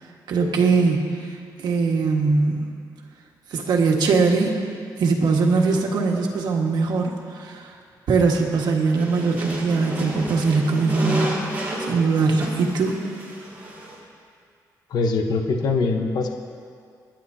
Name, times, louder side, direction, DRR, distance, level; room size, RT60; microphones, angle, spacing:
voice 1, 0.3-1.0 1.6-2.6 3.5-4.5 5.0-7.7 8.1-11.4 11.8-12.9, right 4 dB, 80° right, 0 dB, 1.6 m, -21 dB
sound 1, 8.9-14.0, right 1 dB, 25° right, 3.5 m, -31 dB
voice 2, 14.9-16.3, left 3 dB, 70° left, 3 dB, 1.1 m, -22 dB
28.5 x 10.5 x 2.8 m, 2.3 s
cardioid pair, 125°, 7 cm